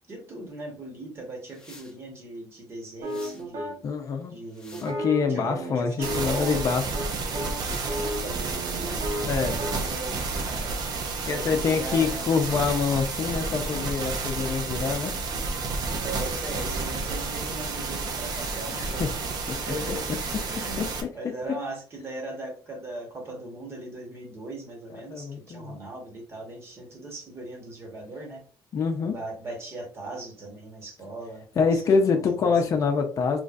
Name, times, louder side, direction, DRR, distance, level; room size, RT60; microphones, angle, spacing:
voice 1, 0.1-3.8 4.3-5.0 5.3-6.8 8.1-9.0 9.8-10.8 11.2-12.3 16.0-19.3 19.6-28.4 29.0-32.6, right 2 dB, 30° right, 1 dB, 1.3 m, -39 dB
sound 1, 1.5-2.0 3.0-3.5 4.2-5.0 6.0-6.4 7.6-7.9, left 2 dB, 10° left, 0.8 m, -50 dB
sound 2, 3.0-3.8 4.7-6.7 6.9-7.1 7.3-9.8, equal, 70° right, 1.1 m, -34 dB
voice 2, 3.8-4.3 4.8-6.8 9.2-9.6 11.2-15.1 18.7-19.1 19.5-19.6 20.8-20.9 25.1-25.8 28.7-29.1 31.6-33.4, left 5 dB, 40° left, 4 dB, 0.6 m, -25 dB
sound 3, 6.0-21.0, right 3 dB, 50° right, 0.7 m, -31 dB
3.8 x 3.1 x 2.5 m, 0.42 s
cardioid pair, 145°, 8 cm